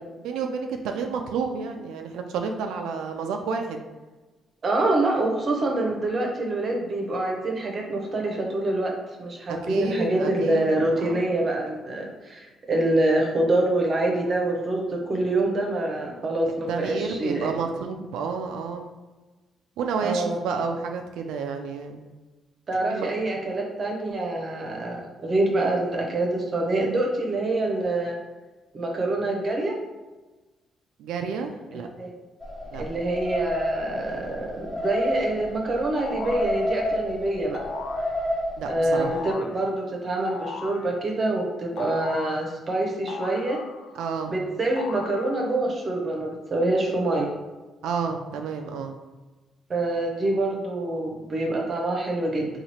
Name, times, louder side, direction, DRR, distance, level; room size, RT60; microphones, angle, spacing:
voice 1, 0.2-3.8 9.5-11.3 16.7-18.9 19.8-22.0 22.8-23.1 31.0-31.9 32.7-32.8 38.6-39.1 44.0-44.3 47.8-49.0, right 5 dB, 90° right, 4 dB, 0.3 m, -30 dB
voice 2, 4.6-8.9 9.2-17.5 20.0-20.4 22.7-28.1 28.7-29.8 31.7-32.1 32.8-37.6 38.7-43.6 44.3-47.3 49.7-52.5, right 2 dB, 40° right, 0 dB, 0.8 m, -26 dB
sound 1, 32.4-39.3, left 1 dB, 5° left, 1.3 m, -30 dB
sound 2, 36.0-36.5 37.5-38.1 38.9-39.5 40.2-40.9 41.8-42.4 43.1-44.0 44.8-45.6, left 5 dB, 75° left, 0.3 m, -37 dB
2.9 x 2.4 x 4.2 m, 1.2 s
cardioid pair, 90°, 0 cm